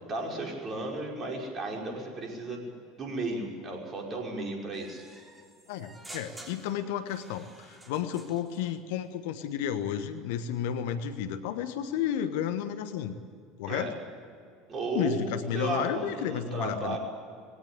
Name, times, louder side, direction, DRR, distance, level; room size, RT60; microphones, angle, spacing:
voice 1, 0.1-2.7 3.0-5.0 13.7-13.9 14.7-17.0, right 2 dB, 35° right, 0 dB, 5.7 m, -34 dB
sound 1, 4.7-8.8, right 1 dB, 10° right, 3.3 m, -50 dB
voice 2, 5.7-13.2 13.6-13.9 14.9-17.0, left 9 dB, 60° left, 10 dB, 1.2 m, -32 dB
20.5 x 17.0 x 8.5 m, 2.3 s
figure-of-eight pair, 70°, 0 cm